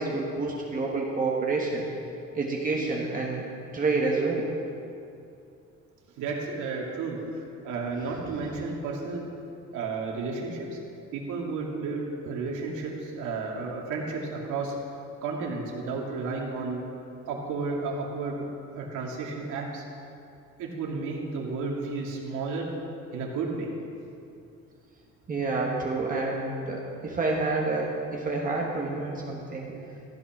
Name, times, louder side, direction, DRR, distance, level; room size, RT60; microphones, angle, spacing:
voice 1, 0.0-1.9 2.3-3.4 3.7-4.5 8.2-8.4 25.3-29.7, right 3 dB, 30° right, -2 dB, 1.3 m, -28 dB
voice 2, 6.2-9.3 9.7-10.8 11.1-14.7 15.2-16.9 17.3-18.4 18.7-19.8 20.6-22.7 23.1-23.7, right 4 dB, 80° right, -1 dB, 2.5 m, -32 dB
15.0 x 9.2 x 6.0 m, 2.6 s
cardioid pair, 160°, 30 cm